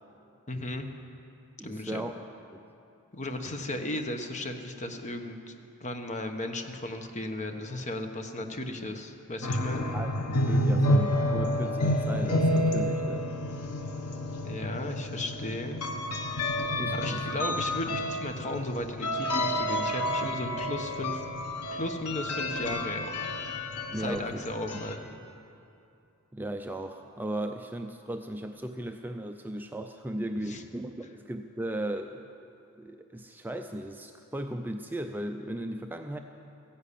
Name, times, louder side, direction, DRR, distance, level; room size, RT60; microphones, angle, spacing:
voice 1, 0.5-0.9 1.6-2.1 3.1-9.9 14.4-15.8 16.9-21.2 21.7-23.1 24.0-25.2 30.4-30.6, left 1 dB, 30° left, 5 dB, 1.1 m, -35 dB
voice 2, 1.6-2.6 9.9-13.3 16.8-17.6 23.9-24.4 26.3-32.3 32.8-36.2, right 1 dB, 10° right, 5 dB, 0.4 m, -37 dB
sound 1, 9.4-24.9, left 1 dB, 90° left, 1.2 m, -29 dB
15.0 x 11.0 x 8.4 m, 2.7 s
head